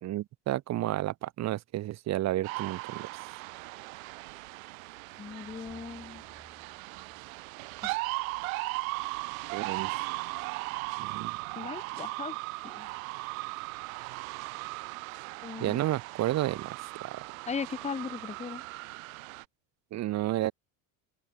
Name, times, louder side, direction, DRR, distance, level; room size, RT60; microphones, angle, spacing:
voice 1, 0.0-3.1 9.5-10.0 11.0-11.4 15.6-17.2 19.9-20.5, right 15 dB, 40° right, 0.9 m, -31 dB
sound 1, 2.4-19.4, right 25 dB, 80° right, 1.3 m, -38 dB
voice 2, 5.2-6.2 7.8-7.9 11.6-12.4 12.6-12.9 15.4-15.8 17.5-18.6, left 5 dB, 15° left, 1.0 m, -38 dB
sound 2, 5.2-9.3, right 2 dB, 10° right, 6.9 m, -61 dB
open air
supercardioid pair, 110°, 41 cm